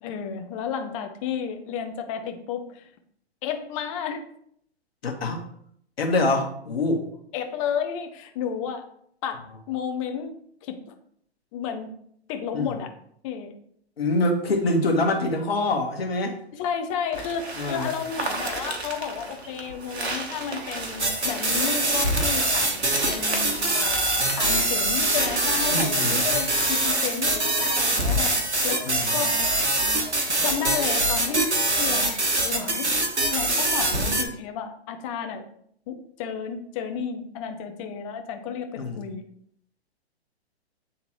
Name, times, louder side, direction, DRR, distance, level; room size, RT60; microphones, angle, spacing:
voice 1, 0.0-2.8 3.4-4.3 7.3-8.8 9.2-10.3 10.6-10.9 11.5-11.9 12.3-12.9 13.2-13.6 16.5-28.8 29.1-29.3 30.4-31.4 31.7-32.9 33.3-35.5 35.9-39.2, left 7 dB, 30° left, 6 dB, 0.7 m, -32 dB
voice 2, 5.0-5.4 6.0-7.0 12.5-12.7 14.0-16.4 17.6-17.9 25.7-26.2 28.8-29.1 38.8-39.0, left 2 dB, 65° left, 2 dB, 1.5 m, -25 dB
sound 1, 17.1-26.6, right 2 dB, 70° right, 1.3 m, -35 dB
sound 2, 19.4-19.7 20.0-20.8 21.0-21.5 21.8-22.1 22.4-22.8 23.0-23.4 23.7-24.0 24.3-24.7 24.9-25.3 25.6-25.9 26.2-26.6 26.8-27.2 27.5-27.8 28.1-28.5 28.7-29.1 29.4-29.7 30.0-30.3 30.6-31.0 31.3-31.6 31.9-32.2 32.5-32.9 33.2-33.5, right 1 dB, 25° right, 1.4 m, -44 dB
sound 3, 21.0-34.2, right 1 dB, 90° right, 1.1 m, -24 dB
8.7 x 3.7 x 3.1 m, 0.67 s
figure-of-eight pair, 115°, 33 cm